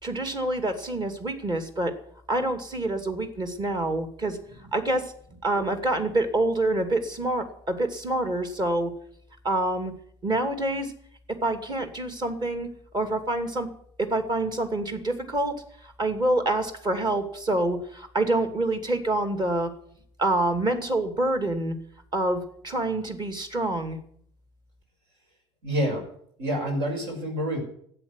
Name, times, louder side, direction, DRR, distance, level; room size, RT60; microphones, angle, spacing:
voice 1, 0.0-1.9 2.3-8.9 9.4-9.9 10.2-10.9 11.3-13.7 14.0-19.7 20.2-21.7 22.1-24.0, right 2 dB, 30° right, 7 dB, 2.6 m, -27 dB
voice 2, 25.6-26.1 26.4-27.6, equal, 65° right, 2 dB, 5.8 m, -27 dB
13.0 x 8.6 x 9.7 m, 0.64 s
figure-of-eight pair, 65°, 14 cm